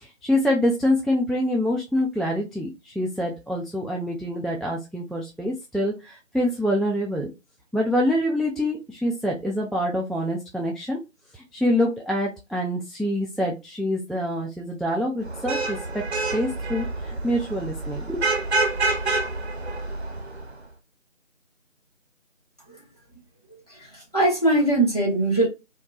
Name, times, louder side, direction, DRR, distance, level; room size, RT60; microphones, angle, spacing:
voice 1, 0.0-7.3 7.7-11.0 11.3-16.0 16.3-18.2, left 1 dB, ahead, 0.3 m, -26 dB
Vehicle horn car horn honking / Traffic noise roadway noise, 15.2-20.5, right 3 dB, 55° right, 0.5 m, -27 dB
voice 2, 23.7-25.5, right 1 dB, 30° left, 0.9 m, -22 dB
2.9 x 2.1 x 2.2 m
figure-of-eight pair, 170°, 39 cm